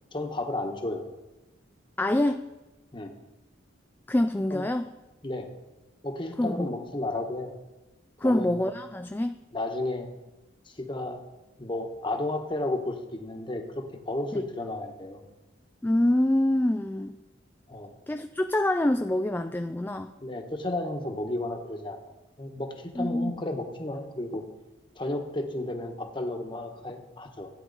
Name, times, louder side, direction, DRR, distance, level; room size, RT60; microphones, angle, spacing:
voice 1, 0.1-1.1 2.9-3.1 4.5-4.6 5.2-5.5 6.0-7.5 8.2-8.6 9.5-10.1 10.7-11.2 11.6-15.2 17.7-18.0 20.2-22.0 22.4-24.4 24.9-27.5, left 2 dB, 25° left, 4 dB, 1.2 m, -33 dB
voice 2, 2.0-2.5 4.1-4.9 6.4-6.7 8.2-9.3 14.3-14.4 15.8-17.2 18.1-20.1 23.0-23.4, left 1 dB, 10° left, 7 dB, 0.3 m, -26 dB
15.0 x 9.5 x 4.1 m, 1.1 s
head